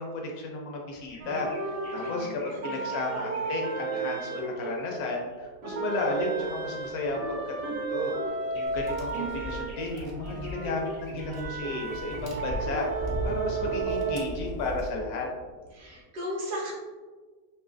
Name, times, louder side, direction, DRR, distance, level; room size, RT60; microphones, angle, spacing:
voice 1, 0.0-8.1 8.5-15.3, left 2 dB, 70° left, 0 dB, 1.0 m, -33 dB
sound 1, 0.9-4.8 5.1-16.0, left 1 dB, 50° left, 0.3 m, -54 dB
sound 2, 1.2-5.3 5.6-14.2, right 4 dB, 65° right, 0.9 m, -34 dB
voice 2, 2.0-2.9 15.7-16.7, equal, 45° right, -5 dB, 0.6 m, -37 dB
Tap, 8.6-14.9, equal, 85° right, 0.5 m, -37 dB
3.1 x 2.6 x 2.5 m, 1.4 s
omnidirectional pair, 1.8 m